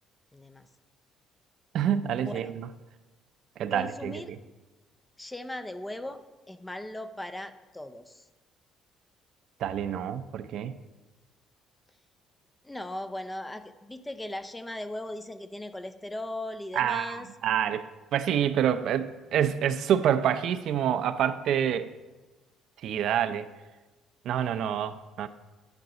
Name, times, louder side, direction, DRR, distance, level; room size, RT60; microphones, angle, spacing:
voice 1, 0.3-0.7 2.2-2.5 3.7-4.3 5.2-8.3 12.6-17.3, left 1 dB, 10° left, 11 dB, 0.4 m, -38 dB
voice 2, 1.7-2.7 3.6-4.1 9.6-10.7 16.7-17.8 18.1-21.9 22.8-23.5 24.2-25.3, right 9 dB, 60° right, 11 dB, 0.5 m, -27 dB
10.5 x 5.2 x 6.8 m, 1.2 s
cardioid pair, 160°, 0 cm